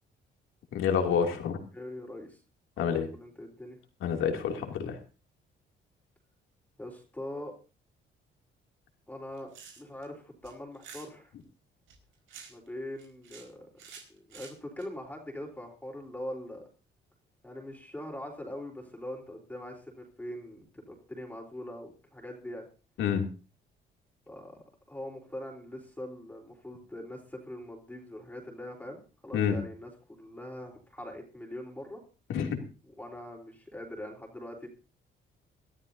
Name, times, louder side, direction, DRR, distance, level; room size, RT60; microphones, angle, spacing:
voice 1, 0.7-1.6 2.8-3.1 4.0-5.0 23.0-23.2 29.3-29.5 32.3-32.6, left 7 dB, 85° left, 4 dB, 2.7 m, -28 dB
voice 2, 1.7-2.4 2.8-3.8 6.8-7.5 9.1-9.5 9.8-11.3 12.5-13.7 14.1-16.6 17.4-22.7 24.3-32.0 32.9-34.7, left 1 dB, 10° left, 1 dB, 3.7 m, -42 dB
sound 1, 9.3-10.1 10.4-11.1 11.9-12.7 13.0-13.5 13.8-14.8, right 6 dB, 85° right, 4.8 m, -49 dB
23.0 x 13.0 x 2.7 m, 0.33 s
cardioid pair, 90°, 20 cm